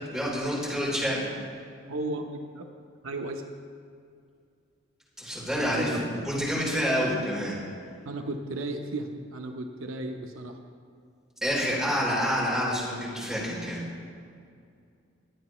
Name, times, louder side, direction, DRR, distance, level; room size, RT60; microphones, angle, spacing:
voice 1, 0.1-1.3 5.2-5.9 6.2-7.5 11.4-13.8, equal, ahead, -7 dB, 3.4 m, -28 dB
voice 2, 1.9-2.7 3.0-3.4 5.5-6.4 8.1-10.6, right 2 dB, 75° right, 4 dB, 0.8 m, -35 dB
21.5 x 8.3 x 3.1 m, 2.3 s
head